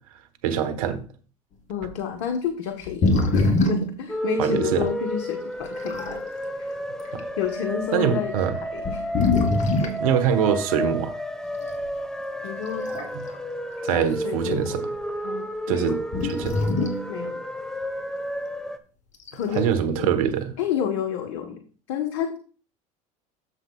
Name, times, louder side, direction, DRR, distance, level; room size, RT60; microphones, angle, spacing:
voice 1, 0.4-1.0 4.4-4.9 7.1-7.2 7.9-8.6 10.0-11.1 13.1-13.2 13.8-14.9 15.7-16.0 16.2-16.6 19.5-20.5, right 8 dB, 80° right, 1.2 m, -24 dB
voice 2, 1.7-6.2 6.6-6.7 7.4-9.0 12.4-12.9 13.8-14.8 15.2-16.3 17.1-17.4 19.3-19.7 20.0-20.2 20.6-21.6 21.9-22.4, left 8 dB, 70° left, 1.2 m, -30 dB
sound 1, 1.8-2.0 2.8-4.0 4.8-4.9 5.6-6.2 7.0-7.2 8.1-8.2 8.8-10.0 11.7-11.8 12.7-13.4 13.7-13.8 16.1-17.1 19.1-19.7, left 2 dB, 45° left, 2.3 m, -24 dB
sound 2, 4.1-18.8, equal, 5° left, 1.1 m, -31 dB
11.5 x 7.3 x 2.3 m
hypercardioid pair, 80°, 18 cm